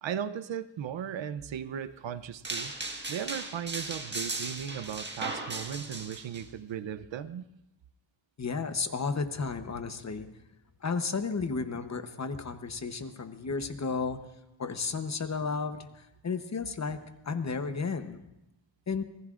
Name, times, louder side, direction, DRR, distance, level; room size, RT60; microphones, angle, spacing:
voice 1, 0.0-2.7 3.1-7.4, right 9 dB, 75° right, 14 dB, 0.7 m, -37 dB
sound 1, 2.4-6.4, right 2 dB, 25° right, 1.5 m, -37 dB
voice 2, 8.4-10.3 10.8-14.2 14.6-17.0 17.2-18.2 18.9-19.0, left 4 dB, 35° left, 8 dB, 0.9 m, -33 dB
25.0 x 18.5 x 2.5 m, 0.90 s
wide cardioid pair, 145°, 46 cm